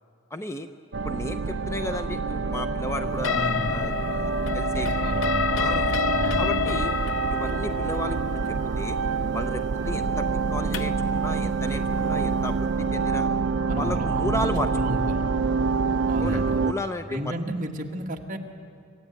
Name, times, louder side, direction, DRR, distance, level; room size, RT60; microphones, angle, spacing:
voice 1, 0.3-0.7 1.0-5.0 5.6-6.0 6.4-7.0 7.3-9.0 9.3-13.3 13.7-15.0 16.2-17.3, left 1 dB, 15° left, 8 dB, 0.6 m, -33 dB
sound 1, 0.9-16.7, right 4 dB, 60° right, 0.5 m, -26 dB
sound 2, 3.2-11.1, left 7 dB, 75° left, 0.6 m, -29 dB
voice 2, 3.3-3.7 4.8-5.5 6.1-6.6 13.7-15.2 16.1-16.6 17.1-18.4, equal, 40° right, 2 dB, 1.6 m, -32 dB
25.5 x 14.0 x 9.3 m, 2.4 s
head